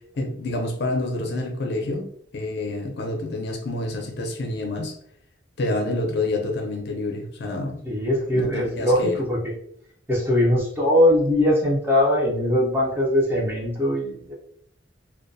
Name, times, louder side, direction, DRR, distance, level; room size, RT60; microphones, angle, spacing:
voice 1, 0.2-2.1 2.3-4.9 5.6-7.8 8.3-9.2, left 2 dB, 55° left, 1 dB, 0.5 m, -28 dB
voice 2, 7.8-9.5 10.1-14.3, left 1 dB, 10° right, -4 dB, 0.5 m, -21 dB
2.3 x 2.1 x 2.5 m, 0.67 s
head